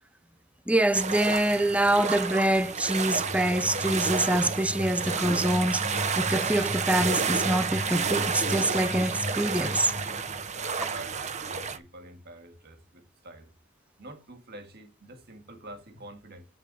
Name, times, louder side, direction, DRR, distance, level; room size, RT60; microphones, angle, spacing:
voice 1, 0.7-5.9 6.2-9.9, right 1 dB, 5° right, 0.5 m, -25 dB
sound 1, 0.9-11.8, right 5 dB, 35° right, 0.8 m, -30 dB
sound 2, 3.1-10.5, left 2 dB, 20° left, 1.1 m, -37 dB
voice 2, 10.5-13.5 14.0-16.5, right 1 dB, 50° right, 1.8 m, -46 dB
9.6 x 3.8 x 6.2 m
head